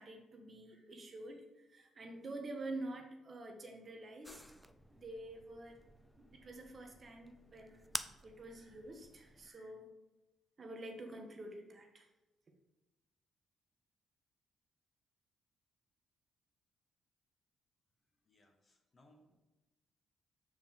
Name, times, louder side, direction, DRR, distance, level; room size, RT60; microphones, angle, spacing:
voice 1, 0.0-4.4 4.9-5.8 6.2-7.8 8.2-9.9 10.6-12.1, right 2 dB, 40° right, 3 dB, 1.0 m, -48 dB
sound 1, 4.2-9.5, left 1 dB, 5° left, 0.3 m, -50 dB
voice 2, 18.2-19.3, left 1 dB, 35° left, 2 dB, 1.2 m, -67 dB
5.8 x 4.7 x 3.6 m, 1.1 s
cardioid pair, 90°, 0 cm